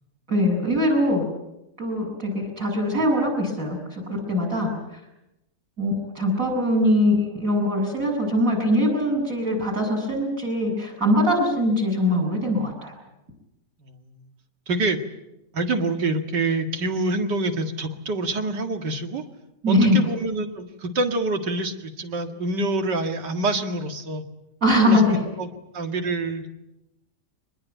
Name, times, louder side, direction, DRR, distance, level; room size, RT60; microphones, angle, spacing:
voice 1, 0.3-1.2 1.8-4.0 4.3-5.0 5.8-12.9 19.6-20.1 24.6-25.2, left 1 dB, 50° right, 3 dB, 7.9 m, -22 dB
voice 2, 13.8-14.2 14.7-15.0 15.5-19.2 19.7-24.2 24.9-25.0 25.4-26.5, right 2 dB, 85° right, 6 dB, 2.6 m, -26 dB
24.5 x 20.5 x 9.2 m, 0.90 s
omnidirectional pair, 1.8 m